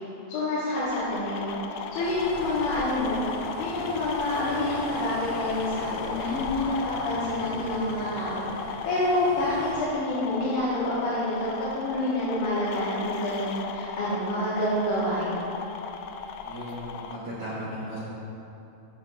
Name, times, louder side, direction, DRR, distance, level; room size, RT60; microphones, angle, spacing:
voice 1, 0.3-3.2 3.6-11.5 11.7-15.4, left 1 dB, 65° left, -11 dB, 2.7 m, -28 dB
sound 1, 0.7-17.2, left 6 dB, 85° left, 2.3 m, -36 dB
sound 2, 2.0-9.7, equal, 55° right, 3.2 m, -40 dB
voice 2, 16.4-18.0, equal, 85° right, -9 dB, 1.3 m, -36 dB
13.5 x 7.4 x 2.5 m, 2.9 s
omnidirectional pair, 4.6 m